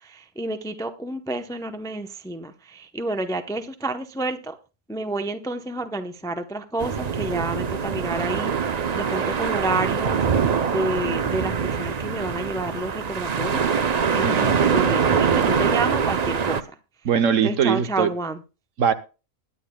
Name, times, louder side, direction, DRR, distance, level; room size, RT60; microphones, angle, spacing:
voice 1, 0.0-4.6 4.9-10.3 10.7-16.7 17.4-18.4, right 2 dB, 5° left, 0.5 m, -30 dB
sound 1, 6.8-16.6, right 6 dB, 45° right, 0.6 m, -23 dB
voice 2, 14.2-14.6 17.0-18.1 18.8-18.9, right 7 dB, 65° right, 1.2 m, -21 dB
21.0 x 9.9 x 2.3 m
omnidirectional pair, 1.5 m